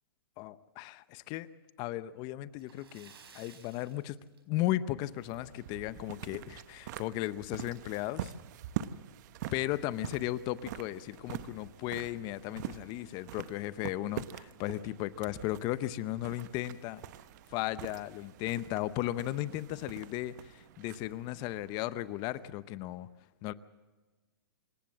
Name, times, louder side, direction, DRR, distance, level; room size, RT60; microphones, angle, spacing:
voice 1, 0.4-1.5 1.8-4.2 4.5-8.3 9.5-17.0 17.5-23.1 23.4-23.5, left 15 dB, 30° left, 16 dB, 0.7 m, -36 dB
Splash splatter, 2.5-4.9 5.2-5.4 5.8-5.9 7.4-7.5 7.8-7.9 8.5-8.8, right 6 dB, 75° right, 4.4 m, -57 dB
sound 1, 4.9-22.5, right 11 dB, 50° right, 0.9 m, -45 dB
26.5 x 15.5 x 7.4 m, 1.2 s
hypercardioid pair, 140°, 13 cm